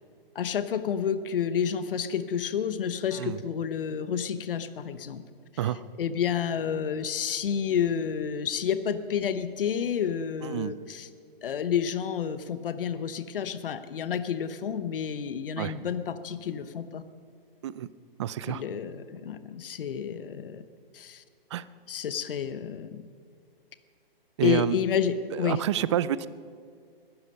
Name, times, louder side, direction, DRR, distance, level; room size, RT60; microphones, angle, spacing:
voice 1, 0.3-5.2 5.6-11.1 11.4-17.0 18.5-20.6 20.9-21.2 21.9-23.0 24.4-25.6, left 8 dB, 65° left, 12 dB, 1.0 m, -30 dB
voice 2, 10.4-10.7 15.6-15.7 17.6-17.9 18.2-18.6 21.5-21.6 24.4-24.8 25.3-26.3, right 11 dB, 30° right, 17 dB, 0.4 m, -28 dB
21.0 x 12.0 x 5.6 m, 2.2 s
hypercardioid pair, 135°, 29 cm